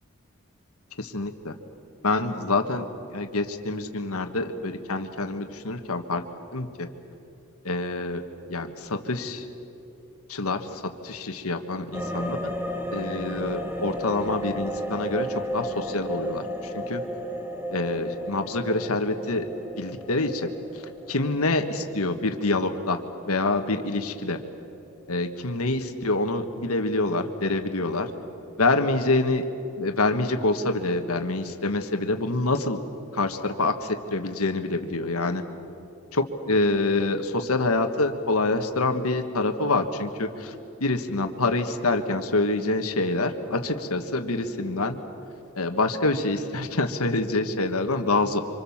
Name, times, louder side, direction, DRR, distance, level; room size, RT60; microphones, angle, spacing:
voice 1, 1.0-1.5 2.0-2.9 3.1-6.2 6.5-6.9 7.6-8.2 8.5-9.4 10.3-12.4 12.9-17.0 17.7-19.4 19.8-20.4 21.1-24.4 25.1-28.1 28.6-29.4 29.8-32.8 33.1-35.4 36.1-40.5 40.8-45.0 45.5-48.4, left 2 dB, 90° left, 6 dB, 1.6 m, -26 dB
sound 1, 11.9-24.1 24.4-24.5, equal, 10° right, 1.5 m, -34 dB
26.5 x 26.0 x 7.3 m, 2.9 s
head